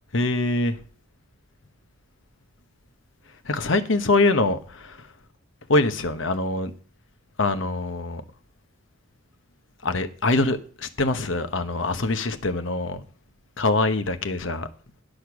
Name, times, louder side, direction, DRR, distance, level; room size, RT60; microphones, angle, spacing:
voice 1, 0.1-0.8 3.4-5.1 5.7-6.7 7.4-8.2 9.8-13.0 13.6-14.7, left 2 dB, 70° left, 1.0 m, -24 dB
10.0 x 6.5 x 6.1 m
head